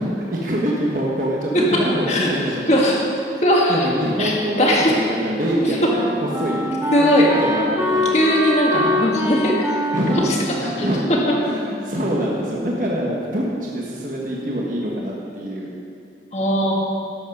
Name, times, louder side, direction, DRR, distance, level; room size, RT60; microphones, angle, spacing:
voice 1, 0.0-2.8 3.3-3.4 3.7-6.7 7.0-8.3 9.9-10.3 10.6-11.1 11.4-15.7, equal, 50° right, -3 dB, 1.3 m, -25 dB
voice 2, 2.7-3.0 3.4-3.9 4.2-4.9 6.9-7.3 8.1-9.7 10.2-10.4 10.8-10.9 16.3-16.7, equal, 40° left, -2 dB, 1.8 m, -18 dB
Wind instrument woodwind instrument, 4.9-12.2, equal, 15° right, 1.2 m, -25 dB
12.5 x 8.2 x 5.4 m, 2.5 s
head